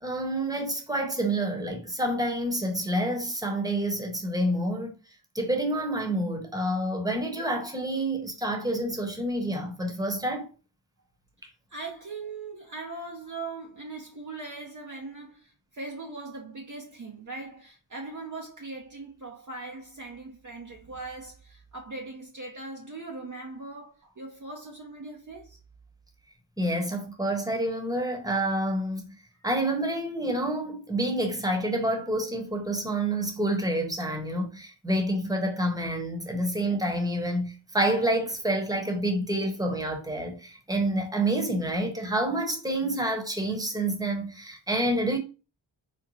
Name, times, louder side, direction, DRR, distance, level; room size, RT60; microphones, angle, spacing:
voice 1, 0.0-4.9 5.3-10.5 26.6-29.1 29.4-45.2, right 1 dB, 10° right, 1.0 m, -28 dB
voice 2, 11.7-25.6 36.3-36.4, right 3 dB, 40° right, 0.6 m, -40 dB
4.0 x 2.1 x 3.0 m
cardioid pair, 45°, 49 cm